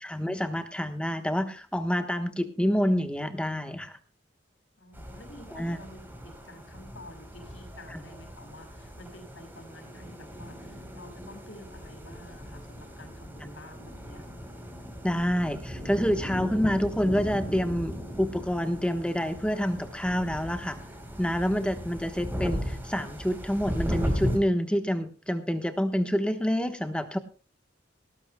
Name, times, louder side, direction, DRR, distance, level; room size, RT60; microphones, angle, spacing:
voice 1, 0.0-4.0 5.5-5.8 7.9-8.0 15.0-20.8 21.2-27.2, equal, 5° left, 7 dB, 1.1 m, -28 dB
voice 2, 4.8-14.2, left 1 dB, 80° left, 5 dB, 6.2 m, -49 dB
sound 1, 4.9-24.4, equal, 10° right, 3.6 m, -37 dB
19.0 x 18.0 x 2.2 m, 0.33 s
head